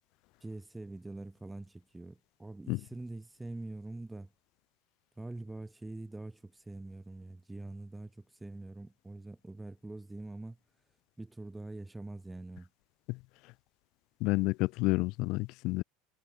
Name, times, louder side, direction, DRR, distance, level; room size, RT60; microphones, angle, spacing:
voice 1, 0.4-4.3 5.2-10.6 11.2-12.7, right 2 dB, 5° right, 1.4 m, -44 dB
voice 2, 14.2-15.8, left 23 dB, 45° left, 0.5 m, -30 dB
supercardioid pair, 165°, 0 cm